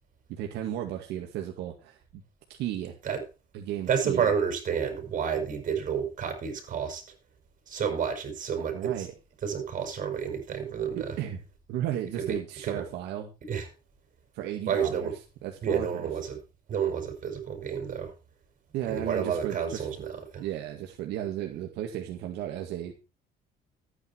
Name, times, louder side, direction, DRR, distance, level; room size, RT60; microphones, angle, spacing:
voice 1, 0.3-2.2 2.6-3.0 3.5-4.3 8.7-9.1 11.0-11.4 11.7-13.3 14.3-15.1 15.4-16.1 18.7-19.9 20.4-22.9, right 11 dB, 85° right, 2.1 m, -34 dB
voice 2, 3.9-7.0 7.7-9.1 9.4-11.1 12.2-12.3 12.6-12.8 13.5-13.7 14.7-15.2 15.6-16.4 16.7-18.1 18.9-20.4, right 7 dB, 50° right, 6.2 m, -30 dB
13.5 x 9.7 x 4.5 m
cardioid pair, 110°, 17 cm